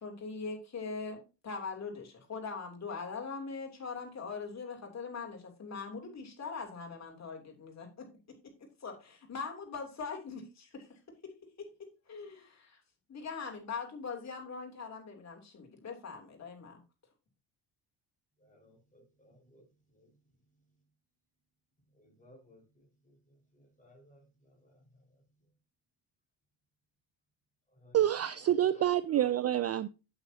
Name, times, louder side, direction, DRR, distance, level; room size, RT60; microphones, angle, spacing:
voice 1, 0.0-8.1 8.8-10.8 11.6-11.7 12.1-12.8 13.1-16.8, left 4 dB, 35° left, 3.0 m, -41 dB
voice 2, 18.4-20.9 21.8-25.5 27.7-29.0, left 1 dB, 15° left, 4.9 m, -61 dB
voice 3, 27.9-29.9, right 12 dB, 35° right, 0.4 m, -27 dB
9.0 x 8.9 x 2.8 m
cardioid pair, 125°, 44 cm